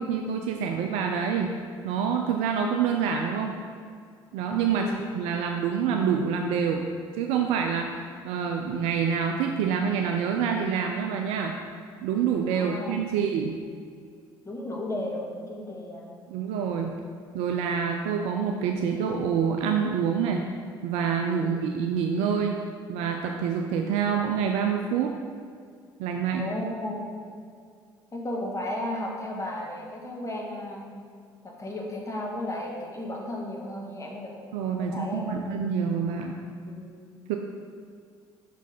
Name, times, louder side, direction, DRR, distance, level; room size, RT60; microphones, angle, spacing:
voice 1, 0.0-1.5 1.8-3.5 4.3-11.6 12.0-13.5 16.3-17.0 17.3-20.4 20.8-22.6 22.9-25.1 26.0-26.5 34.5-36.4 37.3-37.4, right 7 dB, 70° right, 3 dB, 0.4 m, -27 dB
voice 2, 12.5-13.1 14.4-16.1 21.4-21.5 26.4-27.1 28.1-31.0 31.4-34.4 34.8-35.4 36.6-36.9, left 1 dB, 25° left, -1 dB, 1.3 m, -34 dB
5.8 x 4.1 x 4.1 m, 2.2 s
hypercardioid pair, 50°, 12 cm